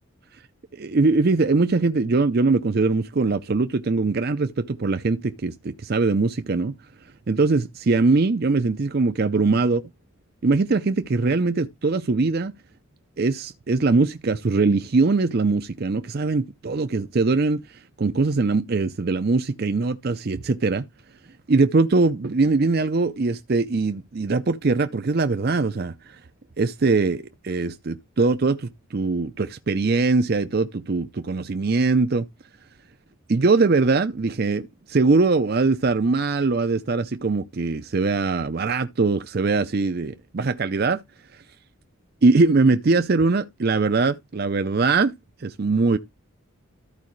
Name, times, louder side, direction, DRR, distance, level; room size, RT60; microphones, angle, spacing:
voice 1, 0.7-6.7 7.3-9.8 10.4-12.5 13.2-17.6 18.0-20.9 21.5-26.2 26.6-32.3 33.3-41.0 42.2-45.1 45.4-46.0, right 3 dB, 45° right, 0.5 m, -21 dB
14.0 x 4.8 x 3.1 m
head